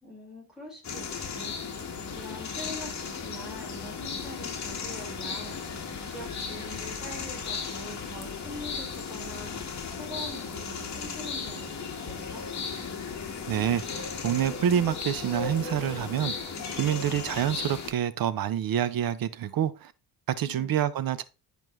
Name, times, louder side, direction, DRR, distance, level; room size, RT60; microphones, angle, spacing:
voice 1, 0.0-1.6 2.1-5.6 6.0-9.5 9.9-12.5 20.4-20.7, left 1 dB, ahead, 4.4 m, -44 dB
sound 1, 0.8-17.9, left 5 dB, 40° left, 1.5 m, -36 dB
voice 2, 13.5-19.9 20.3-21.2, right 10 dB, 55° right, 0.7 m, -27 dB
11.0 x 5.2 x 3.1 m
cardioid pair, 150°, 42 cm